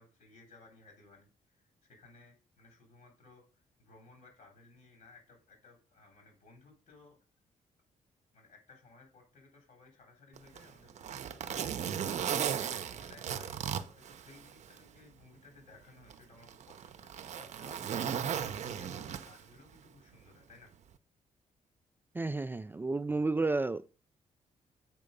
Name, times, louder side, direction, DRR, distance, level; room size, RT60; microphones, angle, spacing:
voice 1, 0.0-7.2 8.3-20.7, left 3 dB, 70° left, 3.7 m, -59 dB
Zipper (clothing), 10.4-14.8 15.2-15.3 16.1-19.6 20.7-20.9, right 8 dB, 55° right, 0.6 m, -36 dB
voice 2, 22.1-23.9, right 3 dB, 15° right, 0.3 m, -31 dB
7.4 x 4.8 x 5.3 m
cardioid pair, 120°, 14 cm